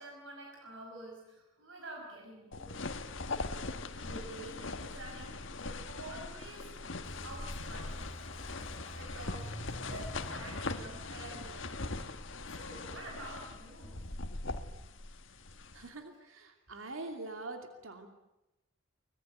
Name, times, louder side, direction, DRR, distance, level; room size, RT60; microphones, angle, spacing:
voice 1, 0.0-2.8 4.0-6.7 7.2-8.1 8.9-9.5 9.8-11.8 12.4-14.1, right 2 dB, 70° right, 0 dB, 5.6 m, -48 dB
sound 1, 2.5-15.9, left 3 dB, 65° left, 1.6 m, -41 dB
sound 2, 7.0-13.6, equal, 30° left, 2.2 m, -47 dB
voice 2, 15.7-18.1, right 2 dB, 85° right, 5 dB, 2.7 m, -44 dB
25.0 x 20.5 x 9.2 m, 0.96 s
head